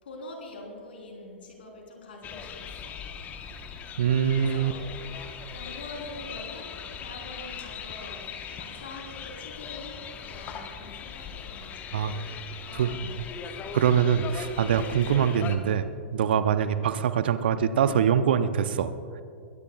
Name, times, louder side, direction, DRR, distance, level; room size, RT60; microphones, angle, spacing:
voice 1, 0.0-3.0 4.0-4.8 5.3-6.7 7.0-8.2 8.6-12.2 12.6-13.8 16.7-16.9, left 2 dB, 65° left, 0 dB, 4.0 m, -45 dB
sound 1, 2.2-15.6, left 7 dB, 25° left, 1.1 m, -39 dB
voice 2, 4.0-4.7 11.9-12.1 12.7-13.1 13.7-18.9, right 8 dB, 55° right, 12 dB, 0.7 m, -24 dB
22.0 x 18.0 x 2.4 m, 2.4 s
figure-of-eight pair, 100°, 6 cm